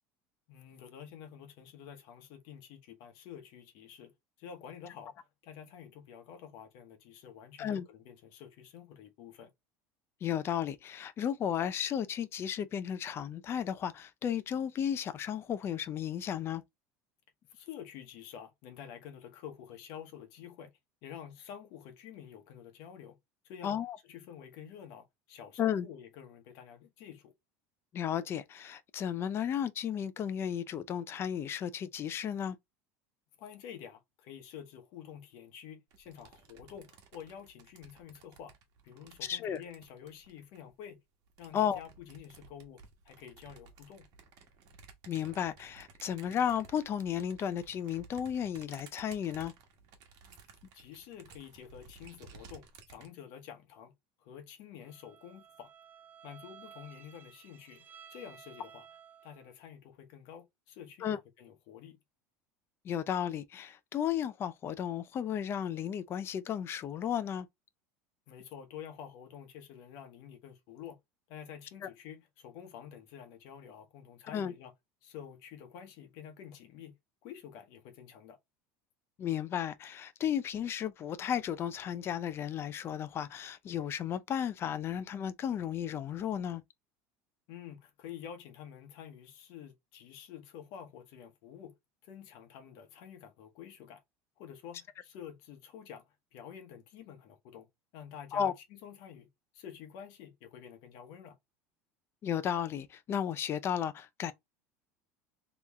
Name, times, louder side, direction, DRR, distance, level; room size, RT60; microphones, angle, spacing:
voice 1, 0.5-4.1 4.4-9.5 17.5-20.7 21.0-23.2 23.4-27.3 33.4-38.5 38.8-41.0 41.4-44.1 50.7-53.9 54.2-55.7 56.2-58.9 59.2-62.0 68.3-71.0 71.3-74.7 75.0-76.9 77.2-78.4 87.5-91.7 92.0-94.0 94.4-97.7 97.9-99.3 99.5-101.4, left 9 dB, 65° left, 1.0 m, -49 dB
voice 2, 10.2-16.6 23.6-24.0 25.6-25.9 27.9-32.6 39.2-39.6 41.5-41.8 45.1-49.5 61.0-61.2 62.8-67.5 74.3-74.5 79.2-86.6 98.3-98.5 102.2-104.3, left 9 dB, 35° left, 0.5 m, -34 dB
sound 1, 35.9-40.7 41.3-53.1, right 5 dB, 55° right, 1.1 m, -56 dB
Bowed string instrument, 54.8-59.5, right 8 dB, 25° right, 0.5 m, -55 dB
3.4 x 3.0 x 3.0 m
supercardioid pair, 125°, 7 cm